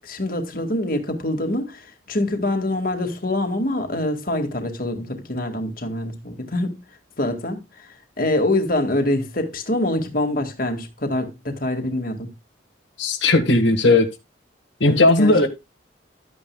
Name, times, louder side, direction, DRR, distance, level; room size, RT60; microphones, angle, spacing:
voice 1, 0.0-6.8 7.2-12.3 14.9-15.3, left 1 dB, 45° left, 2.0 m, -25 dB
voice 2, 13.0-14.1 14.8-15.5, left 2 dB, 75° left, 1.7 m, -16 dB
12.5 x 9.5 x 2.3 m
head